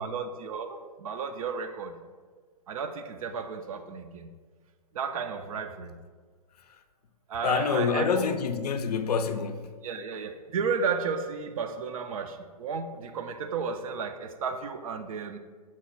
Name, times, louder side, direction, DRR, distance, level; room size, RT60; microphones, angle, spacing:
voice 1, 0.0-2.0 2.7-4.3 4.9-5.9 7.3-8.3 9.8-15.4, right 5 dB, 60° right, 0.4 m, -33 dB
voice 2, 7.4-9.6, left 6 dB, 75° left, 0.4 m, -26 dB
5.9 x 2.1 x 4.2 m
figure-of-eight pair, 115°, 20 cm